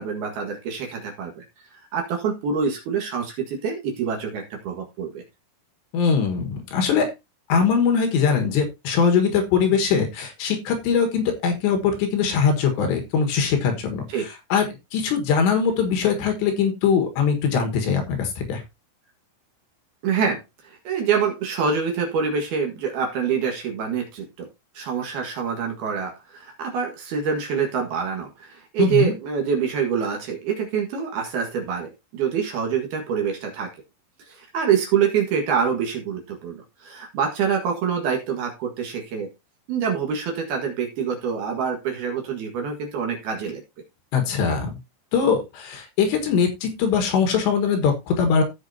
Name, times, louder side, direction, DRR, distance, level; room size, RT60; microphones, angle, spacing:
voice 1, 0.0-1.4 1.9-5.2 14.1-14.3 20.0-24.5 24.7-33.7 34.3-39.3 39.7-43.6, right 7 dB, 60° right, 2 dB, 3.1 m, -26 dB
voice 2, 5.9-7.1 7.5-14.7 14.9-18.6 28.8-29.1 44.1-44.8 45.1-48.4, left 6 dB, 65° left, 5 dB, 3.5 m, -21 dB
15.5 x 5.9 x 2.8 m, 0.23 s
omnidirectional pair, 5.8 m